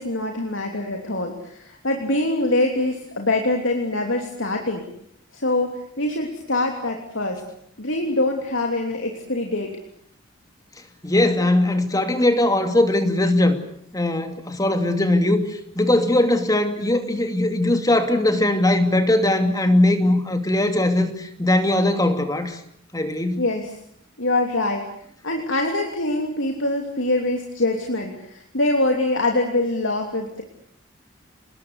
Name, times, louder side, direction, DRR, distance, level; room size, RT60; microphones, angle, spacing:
voice 1, 0.0-4.8 5.3-7.4 7.8-9.7 23.4-23.8 24.2-24.9 25.2-30.4, left 2 dB, 75° left, 3 dB, 3.2 m, -24 dB
voice 2, 11.0-13.6 13.9-15.4 15.8-22.6 22.9-23.4, left 1 dB, 20° left, 7 dB, 2.6 m, -20 dB
29.5 x 20.0 x 8.2 m, 0.68 s
head